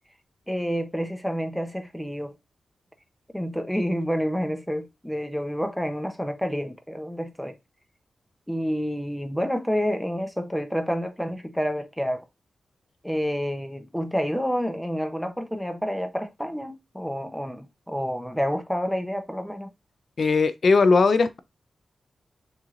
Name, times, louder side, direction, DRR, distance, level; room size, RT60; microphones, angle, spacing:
voice 1, 0.5-2.4 3.3-7.5 8.5-12.3 13.0-19.7, equal, ahead, 0.6 m, -29 dB
voice 2, 20.2-21.4, left 4 dB, 45° left, 0.4 m, -19 dB
6.3 x 3.2 x 2.4 m
wide cardioid pair, 145°, 0 cm